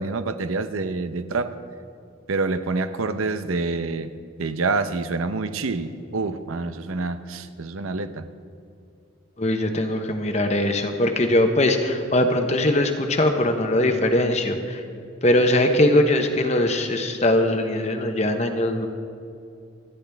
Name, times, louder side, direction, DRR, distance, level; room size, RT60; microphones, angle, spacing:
voice 1, 0.0-1.5 2.3-8.3, right 3 dB, 90° right, 11 dB, 0.7 m, -27 dB
voice 2, 9.4-14.8 15.2-18.9, left 1 dB, 35° left, 5 dB, 0.9 m, -21 dB
27.5 x 10.5 x 3.5 m, 2.5 s
head